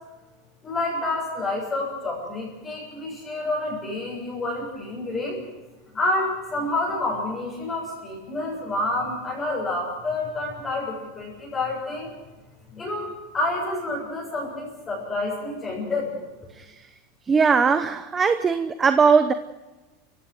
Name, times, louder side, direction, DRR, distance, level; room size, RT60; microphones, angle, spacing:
voice 1, 0.6-5.4 5.9-12.1 12.7-16.2, left 2 dB, 20° left, -6 dB, 7.3 m, -28 dB
voice 2, 17.3-19.3, right 5 dB, 15° right, 10 dB, 0.8 m, -19 dB
29.0 x 16.0 x 6.4 m, 1.2 s
supercardioid pair, 165°, 0 cm